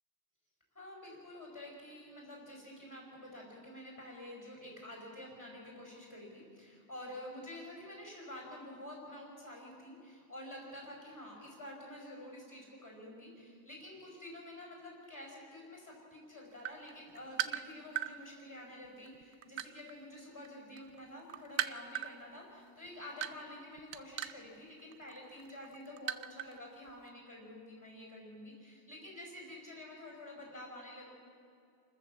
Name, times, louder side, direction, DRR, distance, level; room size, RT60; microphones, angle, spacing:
voice 1, 0.7-31.0, left 1 dB, 15° left, -1 dB, 4.9 m, -49 dB
sound 1, 16.5-18.1 18.8-20.5 20.8-26.6 26.9-27.1, right 12 dB, 80° right, 1.1 m, -38 dB
28.0 x 14.0 x 7.3 m, 2.4 s
omnidirectional pair, 1.4 m